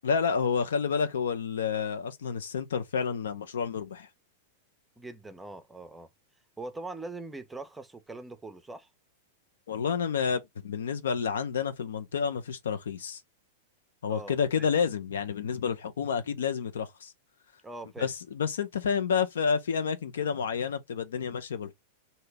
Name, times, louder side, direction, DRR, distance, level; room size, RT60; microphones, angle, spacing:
voice 1, 0.0-4.1 9.7-13.2 14.0-17.1 18.0-21.7, left 6 dB, 70° left, 0.6 m, -29 dB
voice 2, 5.0-6.1 6.6-8.9 14.1-14.7 17.6-18.1, right 2 dB, 10° right, 0.6 m, -42 dB
2.8 x 2.7 x 3.2 m
figure-of-eight pair, 95°, 0 cm